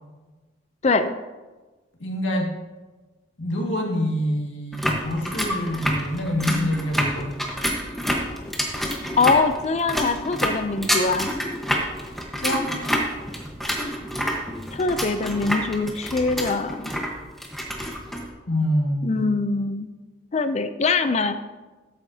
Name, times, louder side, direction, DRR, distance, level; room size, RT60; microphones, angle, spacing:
voice 1, 0.8-1.1 9.2-11.3 14.7-16.9 19.0-19.9 20.3-21.4, left 4 dB, 35° left, 10 dB, 0.4 m, -23 dB
voice 2, 2.0-2.5 3.4-7.3 12.4-12.7 18.5-19.1, equal, 90° left, -1 dB, 1.9 m, -25 dB
sound 1, 4.7-18.3, equal, ahead, 1.1 m, -28 dB
12.5 x 8.5 x 2.7 m, 1.2 s
head